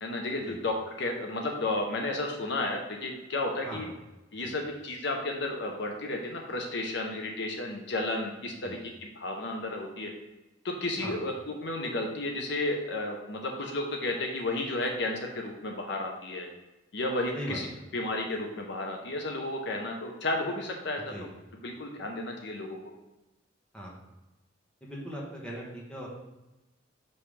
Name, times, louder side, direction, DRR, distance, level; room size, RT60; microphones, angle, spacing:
voice 1, 0.0-3.9 4.3-10.1 10.6-16.5 16.9-17.7 17.9-21.0 21.6-22.8, left 2 dB, 65° left, 2 dB, 0.9 m, -32 dB
voice 2, 3.6-3.9 4.4-4.5 8.6-8.8 11.0-11.2 17.3-17.6 21.1-21.3 23.7-23.9 24.8-26.1, equal, 5° left, -4 dB, 1.4 m, -39 dB
5.7 x 5.5 x 3.3 m, 1.0 s
head